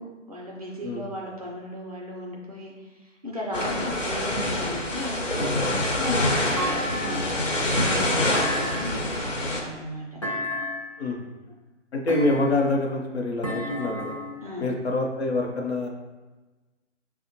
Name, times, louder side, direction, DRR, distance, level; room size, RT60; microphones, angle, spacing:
voice 1, 0.0-5.5 6.0-10.2 14.4-14.7, equal, 30° right, -2 dB, 0.4 m, -36 dB
sound 1, 3.5-9.6, left 1 dB, 85° left, 0.9 m, -26 dB
Thump thud, 6.6-7.5 8.3-9.2 10.2-11.0 12.1-12.8 13.4-14.4, left 1 dB, 25° left, 0.4 m, -32 dB
voice 2, 11.0-11.3 11.9-14.2 14.6-15.9, left 2 dB, 60° left, 0 dB, 0.7 m, -26 dB
5.2 x 2.1 x 2.9 m, 1.2 s
figure-of-eight pair, 130°, 37 cm